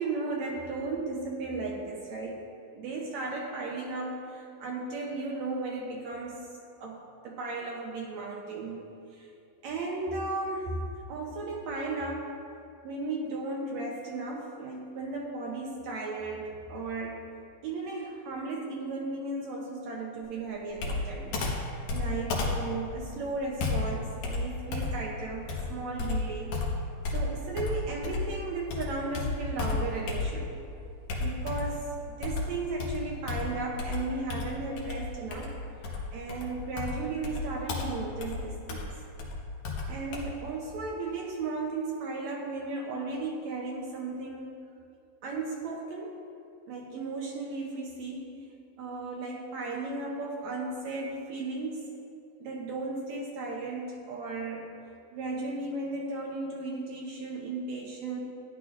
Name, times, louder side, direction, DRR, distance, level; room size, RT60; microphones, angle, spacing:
voice 1, 0.0-2.4 2.7-6.5 6.8-8.8 9.1-9.3 9.6-10.8 11.1-12.3 12.8-17.2 17.6-21.3 21.9-26.5 27.1-30.5 31.2-35.5 36.1-39.0 39.9-44.6 45.2-46.1 46.7-48.4 48.8-51.8 52.4-54.7 55.1-58.2, right 3 dB, 80° right, -1 dB, 1.6 m, -35 dB
Computer keyboard, 20.8-28.4 28.7-30.6 31.1-31.8 32.2-40.2, left 3 dB, 75° left, 3.0 m, -33 dB
14.5 x 10.5 x 2.5 m, 2.5 s
omnidirectional pair, 4.2 m